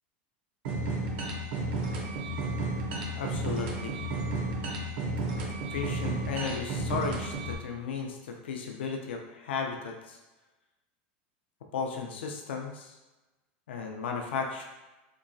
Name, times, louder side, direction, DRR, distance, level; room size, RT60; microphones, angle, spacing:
sound 1, 0.6-7.5, right 2 dB, 75° right, 0.6 m, -32 dB
voice 1, 3.1-4.0 5.7-10.2 11.7-13.0 13.7-14.6, left 5 dB, 90° left, 2 dB, 0.4 m, -35 dB
2.9 x 2.3 x 2.5 m, 1.1 s
supercardioid pair, 115°, 6 cm